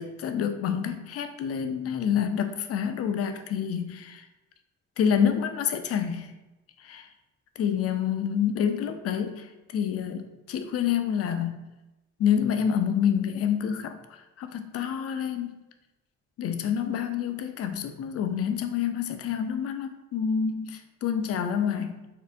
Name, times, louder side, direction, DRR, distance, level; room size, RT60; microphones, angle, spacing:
voice 1, 0.0-4.2 5.0-6.3 6.8-7.1 7.6-9.5 9.7-11.6 12.2-14.0 14.4-15.6 16.4-22.0, left 8 dB, 50° left, 7 dB, 0.4 m, -27 dB
4.3 x 2.1 x 2.6 m, 1.0 s
cardioid pair, 90°, 30 cm